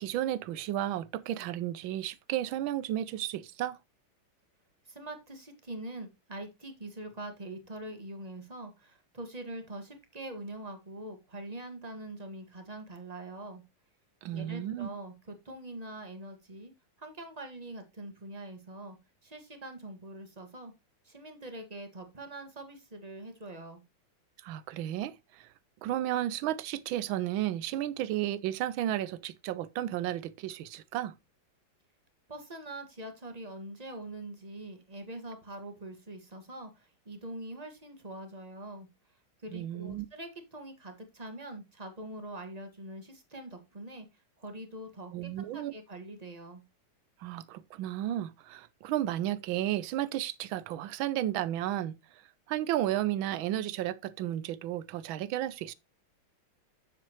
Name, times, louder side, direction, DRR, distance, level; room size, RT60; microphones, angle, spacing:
voice 1, 0.0-3.8 14.2-14.9 24.4-25.5 25.8-31.1 39.5-40.1 45.1-45.7 47.2-52.0 52.5-55.7, right 13 dB, 80° right, 1.4 m, -33 dB
voice 2, 4.9-13.6 14.3-16.7 17.0-19.0 19.2-20.7 21.1-23.8 32.3-38.9 39.4-44.1 44.4-46.6, right 1 dB, 20° right, 1.8 m, -43 dB
8.9 x 7.4 x 3.0 m
omnidirectional pair, 2.2 m